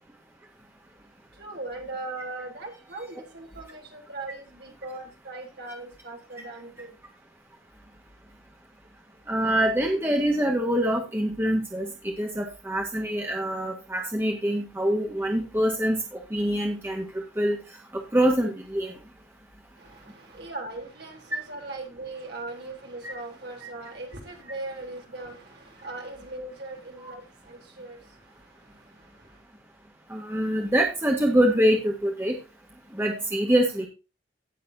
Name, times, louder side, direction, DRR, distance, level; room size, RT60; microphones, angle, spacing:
voice 1, 1.4-6.9 19.8-28.0, right 2 dB, 55° right, 3.6 m, -39 dB
voice 2, 9.3-17.0 17.4-17.6 17.9-18.9 23.0-23.1 27.0-27.1 30.1-32.3 32.9-33.9, right 1 dB, 10° right, 1.7 m, -25 dB
17.0 x 7.0 x 2.8 m
head